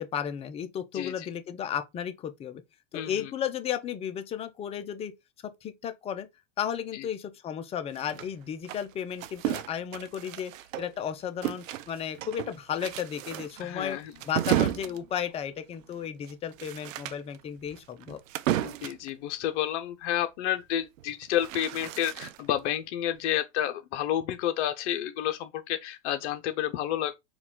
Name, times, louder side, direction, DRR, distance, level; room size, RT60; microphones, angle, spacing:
voice 1, 0.0-2.6 2.9-5.1 5.4-6.3 6.6-10.5 10.8-14.0 14.3-18.2, left 9 dB, 20° left, 0.3 m, -34 dB
voice 2, 0.9-1.3 2.9-3.3 6.9-7.1 13.6-14.1 18.6-27.2, left 11 dB, 65° left, 0.6 m, -30 dB
sound 1, 7.9-11.1 11.4-19.1 21.0-22.6, right 13 dB, 90° right, 0.5 m, -33 dB
4.6 x 2.2 x 3.6 m
supercardioid pair, 120°, 38 cm